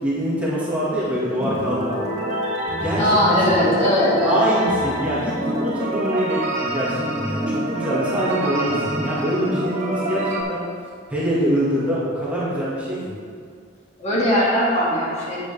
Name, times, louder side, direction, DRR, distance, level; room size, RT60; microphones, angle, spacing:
voice 1, 0.0-2.1 2.8-3.7 4.2-10.6 11.1-13.2, equal, 5° right, -9 dB, 1.8 m, -24 dB
sound 1, 1.4-10.4, right 1 dB, 35° right, 1.8 m, -26 dB
voice 2, 3.0-4.4 14.0-15.4, equal, 35° left, -7 dB, 2.2 m, -19 dB
8.8 x 8.0 x 3.4 m, 2.2 s
head